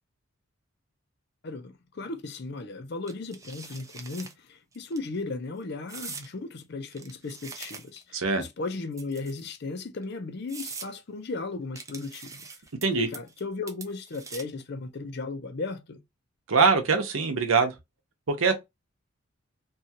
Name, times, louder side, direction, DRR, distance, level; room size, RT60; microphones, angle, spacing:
voice 1, 1.4-12.5 12.9-16.0, left 3 dB, 55° left, 0.5 m, -36 dB
sound 1, 3.1-4.3 4.7-5.0 5.9-6.3 6.9-8.1 8.9-9.5 10.0-10.1 10.5-10.9 11.8-12.9 13.1-13.4 13.7-14.6, right 4 dB, 15° right, 0.4 m, -42 dB
voice 2, 8.1-8.4 12.8-13.1 16.5-17.7 18.3-18.5, right 4 dB, 85° right, 0.8 m, -23 dB
2.7 x 2.4 x 2.7 m
head